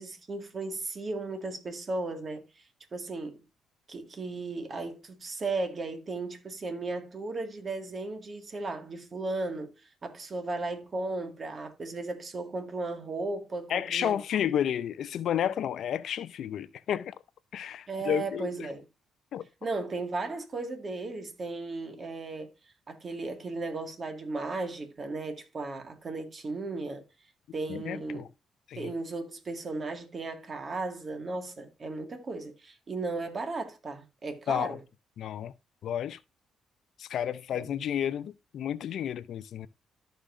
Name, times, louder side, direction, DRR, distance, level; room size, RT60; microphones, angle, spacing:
voice 1, 0.0-2.5 2.9-3.4 3.9-9.7 10.0-14.5 17.9-18.8 19.6-22.5 22.9-27.0 27.5-28.3 28.8-34.8 37.5-37.6, right 3 dB, 40° right, 1.8 m, -35 dB
voice 2, 13.7-17.2 17.5-18.5 19.3-19.4 27.7-28.3 28.7-28.9 34.5-34.8 35.2-35.5 35.8-36.2 37.0-39.7, left 10 dB, 70° left, 0.5 m, -31 dB
13.5 x 5.1 x 2.5 m
cardioid pair, 90°, 0 cm